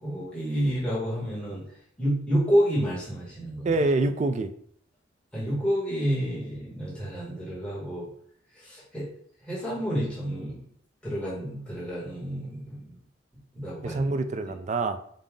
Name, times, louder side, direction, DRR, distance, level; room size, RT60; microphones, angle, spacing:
voice 1, 0.0-1.6 2.0-3.7 5.3-8.1 8.6-9.0 9.5-10.6 11.0-12.9 13.5-14.0, equal, 5° left, -9 dB, 1.5 m, -29 dB
voice 2, 3.6-4.5 13.8-15.0, right 2 dB, 35° right, 9 dB, 0.3 m, -26 dB
5.2 x 2.6 x 3.7 m, 0.62 s
head